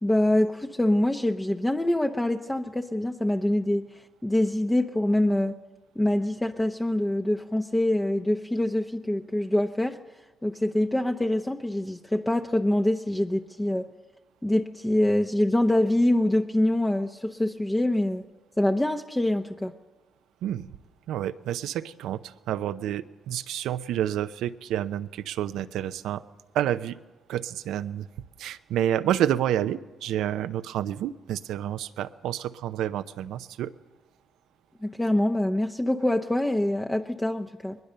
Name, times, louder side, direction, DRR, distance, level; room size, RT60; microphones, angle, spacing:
voice 1, 0.0-5.6 6.0-10.0 10.4-13.9 14.4-18.2 18.6-19.7 34.8-37.8, left 1 dB, 10° left, 4 dB, 0.8 m, -25 dB
voice 2, 21.1-26.2 26.5-27.0 27.3-28.1 28.4-33.7, right 11 dB, 85° right, 12 dB, 0.7 m, -29 dB
21.0 x 20.5 x 6.8 m, 1.2 s
cardioid pair, 90°, 0 cm